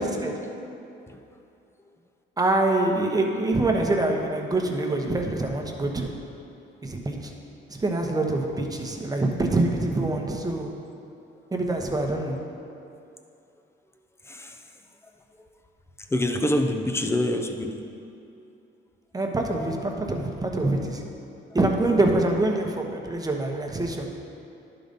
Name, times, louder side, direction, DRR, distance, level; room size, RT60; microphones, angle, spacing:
voice 1, 2.4-6.1 6.8-7.3 7.7-10.7 11.5-12.4 19.1-21.0 21.5-24.1, right 2 dB, 20° right, 1 dB, 1.0 m, -25 dB
voice 2, 14.2-14.6 15.4-15.5 16.1-17.8, left 1 dB, 15° left, 5 dB, 0.6 m, -26 dB
11.0 x 4.0 x 5.2 m, 2.7 s
cardioid pair, 90°, 20 cm